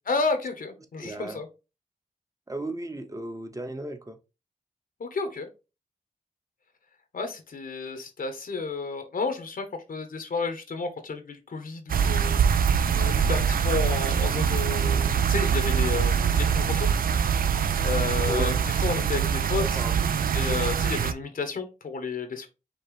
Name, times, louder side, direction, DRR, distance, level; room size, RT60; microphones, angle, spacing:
voice 1, 0.1-1.5 5.0-5.5 7.1-16.9 17.8-19.8 20.3-22.5, left 4 dB, 70° left, 7 dB, 0.9 m, -31 dB
voice 2, 1.0-1.4 2.5-4.2 18.3-18.6 19.5-20.1, right 2 dB, 20° right, 8 dB, 0.9 m, -35 dB
sound 1, 11.9-21.1, right 7 dB, 75° right, 0.4 m, -24 dB
5.1 x 3.0 x 3.1 m, 0.28 s
cardioid pair, 55°, 15 cm